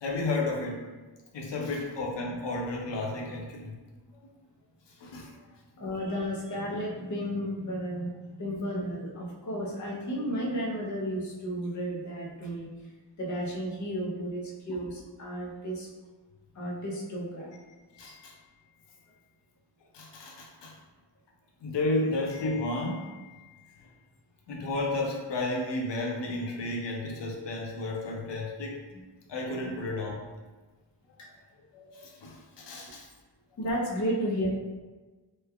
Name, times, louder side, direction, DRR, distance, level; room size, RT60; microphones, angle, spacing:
voice 1, 0.0-0.9 1.3-3.8 5.0-5.3 14.7-14.8 17.9-18.3 19.9-20.7 21.6-23.5 24.5-28.8 29.3-30.2 31.7-33.1, left 2 dB, 80° left, -1 dB, 0.6 m, -32 dB
voice 2, 5.8-15.9 16.5-17.5 18.0-18.2 31.2-31.3 33.6-34.5, equal, 45° left, -3 dB, 0.6 m, -33 dB
3.1 x 2.3 x 3.3 m, 1.3 s
wide cardioid pair, 180°, 42 cm